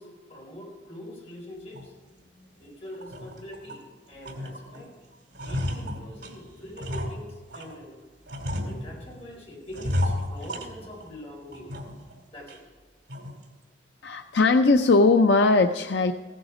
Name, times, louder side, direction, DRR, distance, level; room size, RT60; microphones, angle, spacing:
voice 1, 0.0-1.9 2.5-3.8 4.1-4.9 5.4-8.0 8.6-11.7 12.3-12.6, left 1 dB, 35° left, -3 dB, 4.2 m, -43 dB
sound 1, 1.7-1.9 2.4-2.5 2.9-3.9 4.2-4.9 5.1-7.8 8.3-9.2 9.7-11.2 11.5-12.1 12.5-12.6 13.1-13.5, left 1 dB, 85° right, 2.4 m, -33 dB
voice 2, 14.0-16.1, left 3 dB, 70° left, 7 dB, 0.5 m, -19 dB
15.5 x 9.0 x 4.9 m, 1.5 s
head